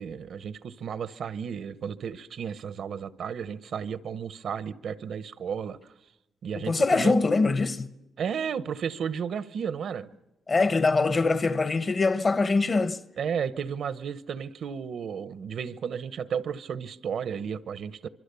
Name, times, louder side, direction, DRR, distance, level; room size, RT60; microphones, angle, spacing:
voice 1, 0.0-5.8 6.4-7.2 8.2-10.1 13.2-18.1, right 7 dB, 65° right, 0.9 m, -33 dB
voice 2, 6.5-7.9 10.5-13.0, left 3 dB, 30° left, 0.9 m, -23 dB
25.0 x 24.5 x 7.0 m
wide cardioid pair, 150°, 0 cm